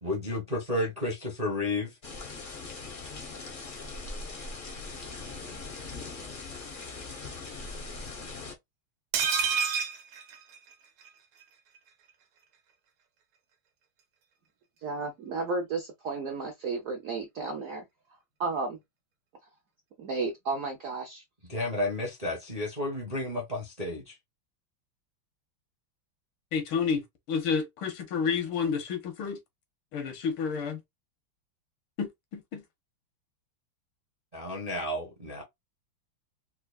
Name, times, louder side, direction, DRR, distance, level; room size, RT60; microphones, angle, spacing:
voice 1, 0.0-2.0 21.4-24.2 34.3-35.4, left 1 dB, 40° right, 0.5 m, -32 dB
sound 1, 2.0-8.6, left 3 dB, 65° left, 0.5 m, -40 dB
sound 2, 9.1-11.1 11.4-11.5 11.8-11.9, right 6 dB, 85° right, 1.7 m, -29 dB
voice 2, 14.8-17.8 18.4-18.8 20.0-21.2, right 3 dB, 70° right, 0.7 m, -33 dB
voice 3, 26.5-29.4 29.9-30.8 32.0-32.6, left 6 dB, 85° left, 1.8 m, -30 dB
4.4 x 2.3 x 2.4 m
omnidirectional pair, 2.3 m